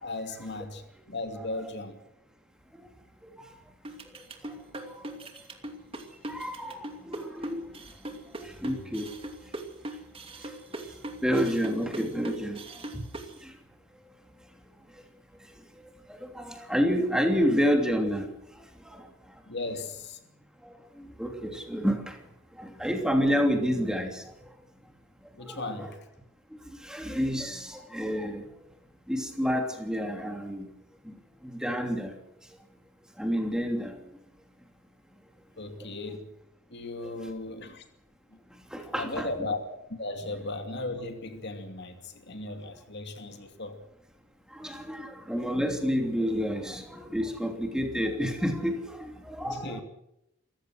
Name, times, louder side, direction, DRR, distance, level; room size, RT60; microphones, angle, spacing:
voice 1, 0.0-0.8 1.1-2.0 19.5-20.2 25.4-26.0 35.6-36.3 36.7-37.8 38.9-39.6 39.9-43.8 49.5-49.8, left 2 dB, 55° left, 6 dB, 2.6 m, -36 dB
sound 1, 3.8-13.3, right 1 dB, 30° right, 2.6 m, -39 dB
voice 2, 6.3-7.6 8.6-9.1 11.2-12.6 16.2-18.3 18.9-19.0 21.0-22.1 22.6-24.2 25.5-25.9 26.8-28.4 29.1-30.7 31.1-31.2 31.5-32.1 33.2-33.9 38.7-39.3 44.6-49.8, equal, 5° right, 4 dB, 3.0 m, -29 dB
27.0 x 15.0 x 6.4 m, 0.82 s
head